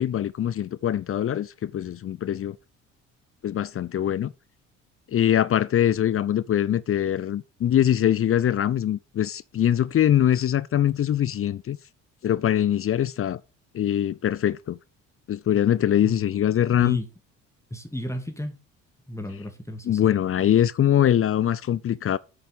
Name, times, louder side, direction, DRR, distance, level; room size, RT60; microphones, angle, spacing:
voice 1, 0.0-2.6 3.4-4.3 5.1-11.8 12.2-13.4 13.7-14.8 15.3-17.0 19.8-22.2, left 10 dB, 35° left, 0.6 m, -23 dB
voice 2, 17.7-18.6 19.1-20.2, equal, 5° left, 2.6 m, -33 dB
8.8 x 6.7 x 6.8 m
hypercardioid pair, 60°, 39 cm